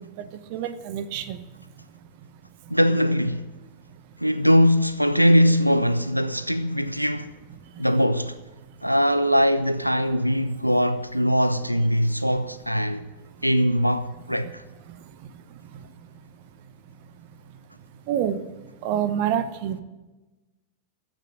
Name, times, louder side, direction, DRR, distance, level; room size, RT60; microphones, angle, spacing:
voice 1, 0.2-1.4 18.1-18.4 18.8-19.8, right 9 dB, 45° right, 0.8 m, -27 dB
voice 2, 2.7-3.5 4.2-7.3 7.8-8.4 8.8-13.1 13.4-14.6, equal, 90° right, 0.4 m, -21 dB
14.5 x 6.2 x 9.5 m
figure-of-eight pair, 90°, 0 cm